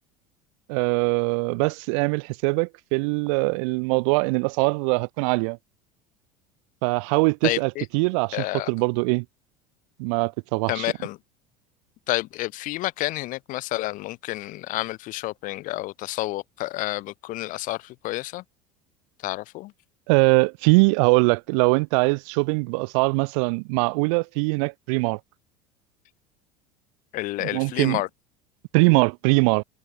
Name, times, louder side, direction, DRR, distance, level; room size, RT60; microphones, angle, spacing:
voice 1, 0.7-5.6 6.8-9.2 10.0-10.9 20.1-25.2 27.4-28.0 28.7-29.6, right 33 dB, 55° right, 0.4 m, -22 dB
voice 2, 7.4-7.8 8.3-8.7 10.7-11.2 12.1-18.4 19.2-19.7 27.1-28.1, left 18 dB, 45° left, 0.5 m, -29 dB
figure-of-eight pair, 70°, 19 cm